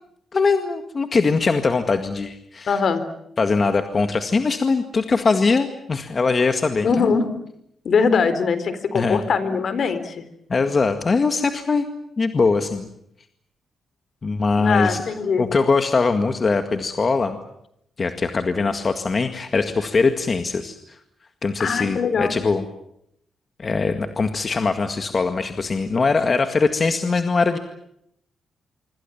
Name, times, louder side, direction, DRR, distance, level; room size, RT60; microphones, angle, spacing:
voice 1, 0.3-2.8 3.4-7.1 8.9-9.2 10.5-11.9 12.2-12.9 14.2-15.0 15.4-17.4 18.0-20.8 21.4-22.6 23.6-27.6, left 4 dB, 35° left, 7 dB, 1.9 m, -21 dB
voice 2, 2.7-3.0 6.8-7.3 7.8-10.2 14.6-15.4 21.6-22.3, left 5 dB, 55° left, 13 dB, 3.8 m, -21 dB
26.0 x 24.5 x 7.3 m, 0.75 s
cardioid pair, 105°, 0 cm